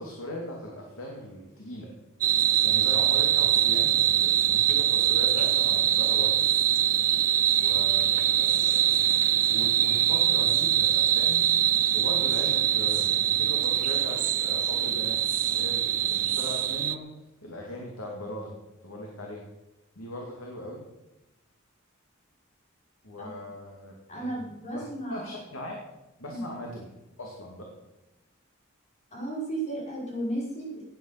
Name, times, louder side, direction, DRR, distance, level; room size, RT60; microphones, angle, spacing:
voice 1, 0.0-1.9 2.6-6.5 7.6-9.0 9.5-11.4 11.9-17.0 17.4-18.5 18.8-19.4 20.0-20.8 23.0-24.4 24.7-24.8 25.1-25.8 26.2-26.9 27.2-27.7, left 1 dB, 80° left, -1 dB, 2.7 m, -39 dB
sound 1, 2.2-17.0, right 11 dB, 40° right, 0.5 m, -23 dB
voice 2, 24.1-25.3 26.3-26.4 29.1-30.8, right 1 dB, 35° left, -4 dB, 5.7 m, -34 dB
17.5 x 9.3 x 6.0 m, 0.98 s
head